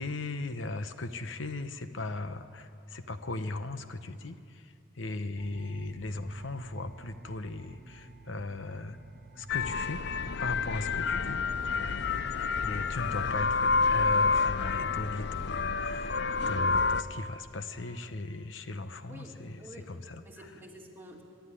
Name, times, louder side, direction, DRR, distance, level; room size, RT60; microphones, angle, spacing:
voice 1, 0.0-9.0 9.4-10.0 10.4-11.4 12.6-20.5, left 2 dB, 80° left, 10 dB, 0.9 m, -38 dB
sound 1, 5.4-16.6, right 2 dB, 55° right, 1.0 m, -50 dB
sound 2, 9.5-17.0, left 4 dB, 65° left, 0.6 m, -29 dB
voice 2, 19.1-19.9 20.2-21.2, equal, 10° right, -1 dB, 2.6 m, -49 dB
25.5 x 11.5 x 9.9 m, 2.5 s
head